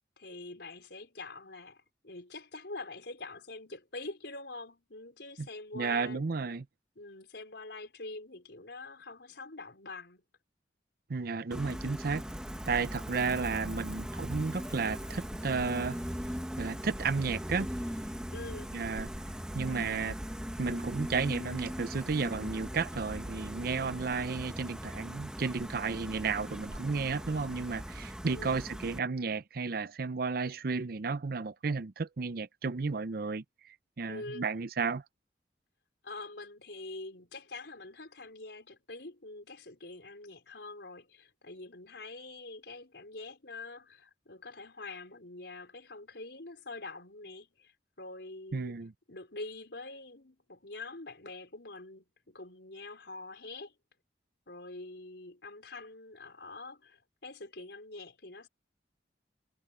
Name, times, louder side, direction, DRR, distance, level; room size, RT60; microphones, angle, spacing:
voice 1, 0.2-6.2 7.0-10.2 18.3-18.7 28.2-28.6 34.1-34.5 36.0-47.7 48.0-48.7 49.1-53.7 54.5-58.5, left 2 dB, 75° left, 4.3 m, -45 dB
voice 2, 5.7-6.6 11.1-12.2 12.7-16.0 16.6-17.7 18.7-19.1 19.5-20.2 20.6-33.4 34.0-35.0 48.5-48.9, right 4 dB, 55° right, 0.6 m, -33 dB
Gull seagull, 11.5-29.0, equal, 5° right, 1.3 m, -40 dB
sound 1, 14.3-28.0, right 1 dB, 85° right, 4.0 m, -53 dB
head